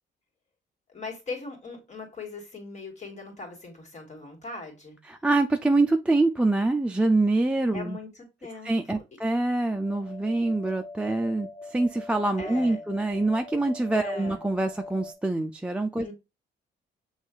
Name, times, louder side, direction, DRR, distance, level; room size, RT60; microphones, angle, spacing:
voice 1, 0.9-5.0 7.7-9.0 12.4-12.8 14.0-14.4 16.0-16.1, left 3 dB, 35° left, 2.3 m, -40 dB
voice 2, 5.0-8.0 8.6-16.1, right 2 dB, 5° right, 0.4 m, -25 dB
sound 1, 9.7-15.1, left 2 dB, 80° left, 1.7 m, -43 dB
6.3 x 3.1 x 2.3 m
cardioid pair, 90°, 20 cm